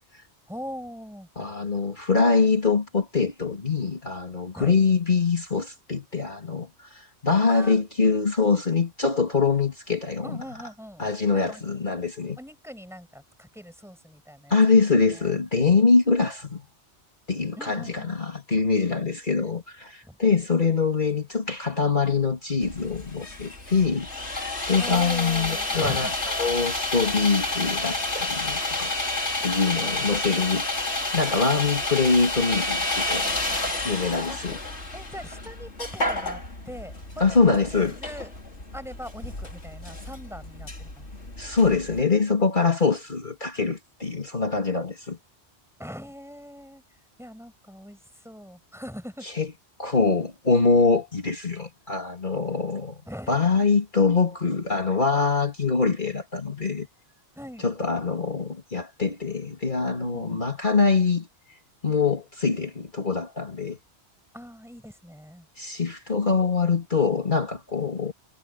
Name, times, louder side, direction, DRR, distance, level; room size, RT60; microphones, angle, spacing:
voice 1, 0.5-1.3 4.5-4.7 7.5-7.8 10.2-11.0 11.3-11.6 12.4-14.6 15.1-15.3 17.6-18.2 20.1-20.2 24.8-26.1 29.8-30.7 34.3-34.4 34.9-38.3 38.7-41.1 45.8-46.8 47.2-49.3 53.1-53.7 57.3-57.7 60.0-60.5 64.3-65.5, equal, ahead, 7.6 m, -41 dB
voice 2, 1.4-10.4 11.0-12.4 14.5-16.6 17.3-24.1 24.7-28.9 29.4-34.6 37.2-38.0 41.4-45.2 49.2-49.5 49.8-53.0 53.3-56.9 57.6-61.3 61.8-63.8 65.6-68.1, left 4 dB, 45° left, 3.0 m, -24 dB
Sawing, 22.6-42.0, left 2 dB, 85° left, 4.2 m, -30 dB
omnidirectional pair, 1.1 m